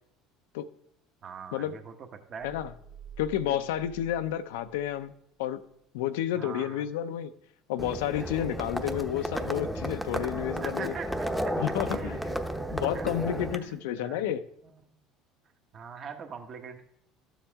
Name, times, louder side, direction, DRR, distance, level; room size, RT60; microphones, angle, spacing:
voice 1, 1.2-1.9 2.3-2.6 3.5-3.6 6.3-6.8 10.6-11.5 11.9-12.4 12.9-13.2 13.7-14.3 15.7-16.8, right 6 dB, 40° right, 1.3 m, -42 dB
sound 1, 2.4-5.1, right 6 dB, 60° right, 0.7 m, -49 dB
voice 2, 3.2-5.6 5.9-7.3 7.7-11.0 11.6-12.2 12.7-14.5, left 11 dB, 90° left, 0.6 m, -31 dB
Livestock farm animals working animals, 7.8-13.6, equal, ahead, 0.8 m, -33 dB
13.0 x 7.2 x 3.6 m
supercardioid pair, 105°, 0 cm